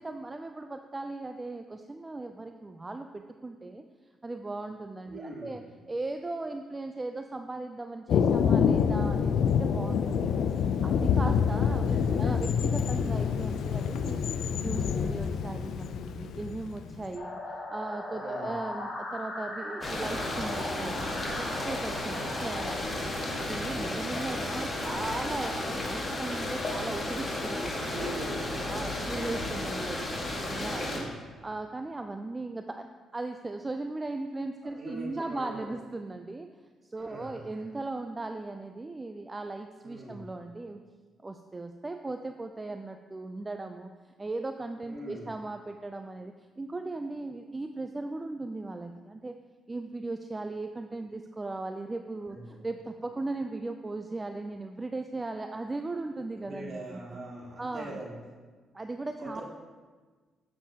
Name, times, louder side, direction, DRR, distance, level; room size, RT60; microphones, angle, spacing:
voice 1, 0.0-3.8 4.2-5.6 5.9-14.2 14.5-23.1 23.4-27.7 28.7-31.1 31.4-32.9 33.1-36.5 36.8-40.8 41.2-49.4 49.7-57.2 57.6-58.0 58.7-59.4, right 2 dB, 20° right, 6 dB, 0.3 m, -38 dB
voice 2, 5.1-5.6 11.9-12.4 14.6-15.0 18.1-18.5 27.7-28.6 29.0-29.4 30.8-31.2 34.8-35.7 37.0-37.6 39.8-40.2 44.9-45.3 52.3-52.6 56.3-58.2 59.2-59.4, right 1 dB, 45° right, -4 dB, 2.2 m, -42 dB
Thunder, 8.1-17.1, left 7 dB, 75° left, 0.4 m, -27 dB
sound 1, 17.2-22.7, left 1 dB, 40° left, 1.9 m, -39 dB
sound 2, 19.8-31.0, left 1 dB, 25° left, 1.5 m, -33 dB
7.4 x 7.0 x 2.8 m, 1.4 s
cardioid pair, 90°, 0 cm